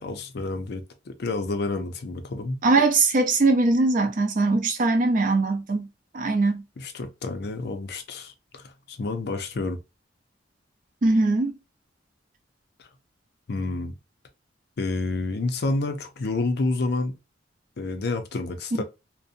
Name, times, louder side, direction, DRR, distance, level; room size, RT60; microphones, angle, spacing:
voice 1, 0.0-2.6 6.8-9.8 12.8-12.9 13.5-13.9 14.8-17.2 17.8-18.8, left 3 dB, 60° left, 0.5 m, -29 dB
voice 2, 2.6-5.9 6.1-6.6 11.0-11.5, right 3 dB, 45° right, 0.5 m, -21 dB
2.6 x 2.1 x 2.4 m
head